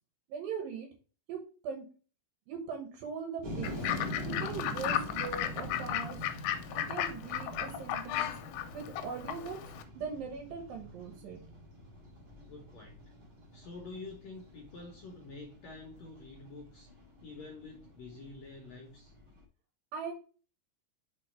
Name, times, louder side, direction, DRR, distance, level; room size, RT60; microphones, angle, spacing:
voice 1, 0.3-0.9 1.3-1.8 2.5-3.8 4.3-6.3 6.7-8.3 8.7-11.4 19.9-20.1, right 6 dB, 75° right, 2 dB, 2.8 m, -40 dB
sound 1, 3.4-19.4, equal, 35° right, 1.9 m, -44 dB
Fowl / Bird, 3.6-9.8, left 11 dB, 85° left, 2.6 m, -35 dB
voice 2, 12.4-13.1 13.5-16.9 17.2-19.1, left 3 dB, 65° left, 1 dB, 1.8 m, -48 dB
5.6 x 4.6 x 4.4 m, 0.37 s
omnidirectional pair, 4.3 m